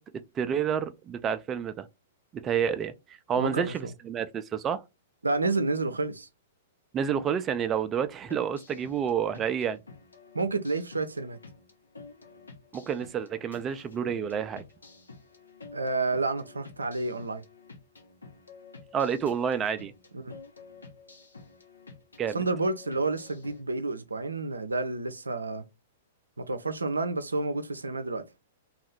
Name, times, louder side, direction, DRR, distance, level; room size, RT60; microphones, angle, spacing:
voice 1, 0.0-1.9 2.3-2.9 3.3-4.8 6.9-9.8 12.7-14.6 18.9-19.9 22.2-22.4, right 8 dB, 25° right, 0.4 m, -29 dB
voice 2, 3.4-3.9 5.2-6.3 10.3-11.4 15.7-17.4 20.1-20.3 22.3-25.6 26.4-28.3, right 3 dB, 90° right, 0.5 m, -30 dB
sound 1, 8.3-23.6, left 4 dB, 85° left, 0.8 m, -51 dB
2.7 x 2.4 x 3.5 m
hypercardioid pair, 110°, 0 cm